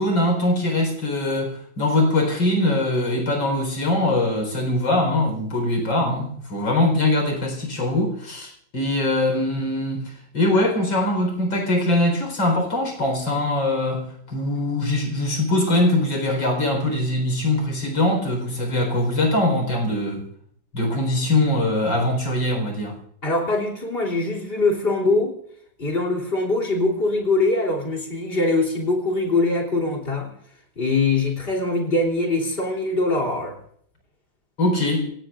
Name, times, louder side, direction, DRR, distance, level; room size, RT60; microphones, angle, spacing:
voice 1, 0.0-20.3 20.7-23.0 34.6-35.1, left 1 dB, 75° left, 2 dB, 5.3 m, -22 dB
voice 2, 23.2-25.3 25.8-30.3 30.8-33.6, left 2 dB, 30° left, -2 dB, 3.4 m, -22 dB
28.0 x 18.0 x 2.5 m, 0.64 s
omnidirectional pair, 2.1 m